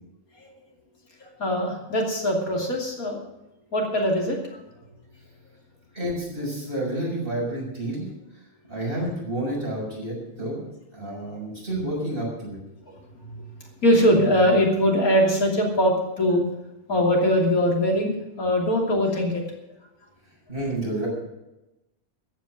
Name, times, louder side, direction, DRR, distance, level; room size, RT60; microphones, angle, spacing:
voice 1, 1.2-3.2 3.7-4.6 11.3-11.4 12.9-13.4 13.8-16.5 16.9-19.4, equal, 80° left, 0 dB, 3.4 m, -22 dB
voice 2, 5.9-8.0 8.7-10.6 10.9-12.6 20.5-21.1, right 1 dB, 40° right, -4 dB, 6.9 m, -29 dB
14.0 x 9.4 x 7.8 m, 0.94 s
omnidirectional pair, 1.5 m